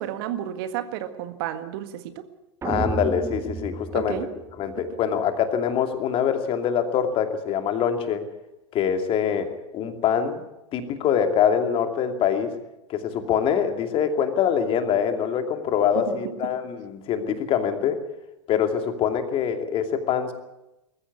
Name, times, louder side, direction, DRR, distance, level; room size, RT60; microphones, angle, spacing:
voice 1, 0.0-2.2 3.9-4.3 4.9-5.0 15.9-16.4, right 11 dB, 50° right, 10 dB, 1.7 m, -32 dB
voice 2, 2.6-4.2 4.6-8.2 8.7-10.4 10.7-12.5 12.9-18.0 18.5-20.3, left 8 dB, 35° left, 7 dB, 2.6 m, -24 dB
sound 1, 2.6-4.9, right 5 dB, 15° right, 0.8 m, -32 dB
21.5 x 14.5 x 9.6 m, 0.94 s
figure-of-eight pair, 90°, 16 cm